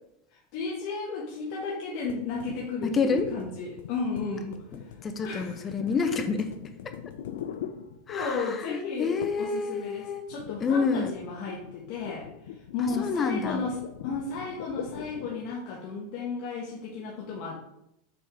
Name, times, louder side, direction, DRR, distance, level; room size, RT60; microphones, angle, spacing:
voice 1, 0.3-4.6 5.2-5.7 6.0-6.1 8.1-17.6, left 4 dB, 50° left, -3 dB, 1.1 m, -34 dB
sound 1, 2.1-8.4 9.2-9.6 9.8-15.5, left 9 dB, 80° left, 0.5 m, -42 dB
voice 2, 2.8-3.3 4.7-6.6 8.1-10.3 10.6-11.1 12.8-13.6, left 5 dB, 20° left, 8 dB, 0.6 m, -28 dB
6.4 x 3.8 x 4.3 m, 0.81 s
supercardioid pair, 160°, 0 cm